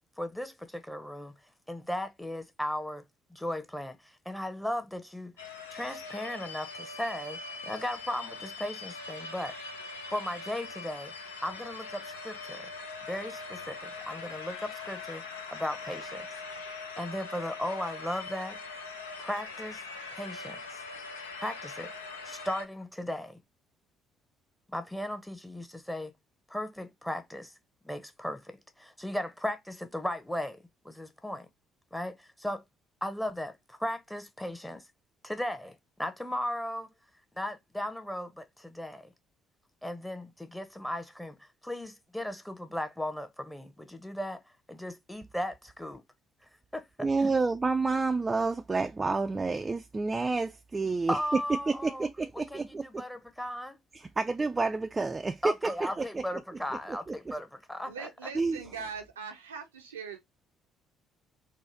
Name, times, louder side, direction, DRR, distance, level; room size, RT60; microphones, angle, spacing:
voice 1, 0.2-1.4 1.7-3.0 3.3-5.3 5.7-9.6 10.1-12.7 13.0-15.2 15.5-16.3 17.0-18.6 19.2-19.8 20.1-20.8 21.4-21.9 22.2-23.4 24.7-26.1 26.5-27.5 27.8-30.6 30.8-31.5 31.9-32.6 33.0-34.8 35.2-36.9 37.4-39.1 39.8-44.4 44.7-46.0 46.7-47.1 51.1-52.1 52.5-53.8 55.4-58.3, left 1 dB, 5° left, 0.8 m, -36 dB
sound 1, 5.4-22.7, left 4 dB, 80° left, 0.5 m, -42 dB
voice 2, 47.0-51.4 51.7-52.9 53.9-56.2 57.1-57.3 58.3-58.6, right 3 dB, 25° right, 0.3 m, -29 dB
voice 3, 57.8-60.3, right 6 dB, 80° right, 0.5 m, -41 dB
3.8 x 2.1 x 3.1 m
figure-of-eight pair, 50°, 0 cm